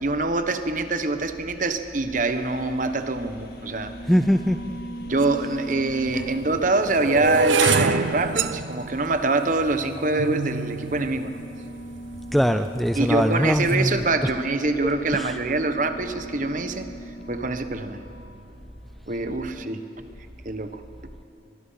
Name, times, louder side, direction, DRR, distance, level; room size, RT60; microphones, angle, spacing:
voice 1, 0.0-3.9 5.1-11.4 12.9-16.9 17.3-18.0 19.1-19.8 20.4-20.8, right 2 dB, 40° right, 8 dB, 1.2 m, -25 dB
sound 1, 2.1-19.7, right 1 dB, 75° left, 2.7 m, -42 dB
sound 2, 2.2-8.4, left 4 dB, 50° left, 1.9 m, -40 dB
voice 2, 4.1-4.8 12.3-14.3 15.1-15.4, equal, ahead, 8 dB, 0.4 m, -22 dB
sound 3, 5.2-5.3 6.1-12.2 12.9-13.3 13.5-13.9, right 4 dB, 75° right, 0.6 m, -27 dB
23.0 x 23.0 x 5.7 m, 2.7 s
head